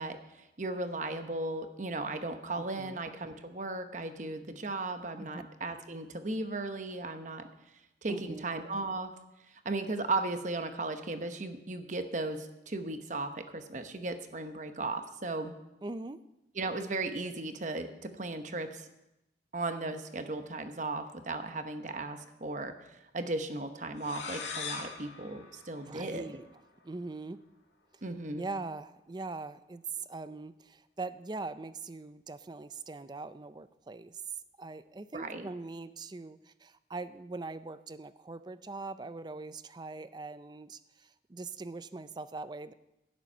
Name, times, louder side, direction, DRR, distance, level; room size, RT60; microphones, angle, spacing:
voice 1, 0.0-7.5 8.0-9.1 9.5-15.5 16.5-18.9 19.5-26.3 28.0-28.5 35.1-35.5, right 2 dB, 45° right, 8 dB, 0.9 m, -36 dB
voice 2, 2.6-3.0 5.2-5.4 8.1-8.5 15.8-16.2 25.8-26.5 26.8-27.4 28.4-34.2 34.6-42.7, right 3 dB, 25° right, 14 dB, 0.4 m, -42 dB
sound 1, 24.0-26.6, left 5 dB, 90° left, 1.9 m, -42 dB
12.0 x 10.0 x 5.5 m, 0.91 s
head